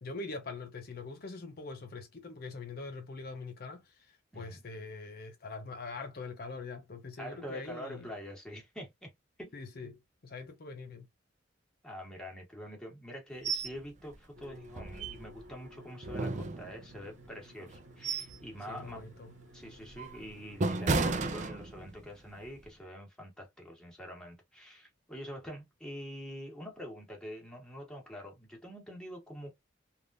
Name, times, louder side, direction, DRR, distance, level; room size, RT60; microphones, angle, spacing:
voice 1, 0.0-8.1 9.5-11.1 18.7-19.3, left 3 dB, 55° left, 0.6 m, -43 dB
voice 2, 7.2-9.1 9.4-9.5 9.8-9.9 11.8-19.0 19.5-29.5, equal, 5° left, 1.3 m, -45 dB
sound 1, 13.4-13.8 14.1-14.2 14.7-15.5 16.0-17.0 17.6-18.4 18.8-19.1 19.6-22.1 22.4-22.7, right 3 dB, 40° right, 0.5 m, -33 dB
sound 2, 14.3-20.7, equal, 70° right, 1.1 m, -55 dB
3.4 x 2.5 x 2.4 m
head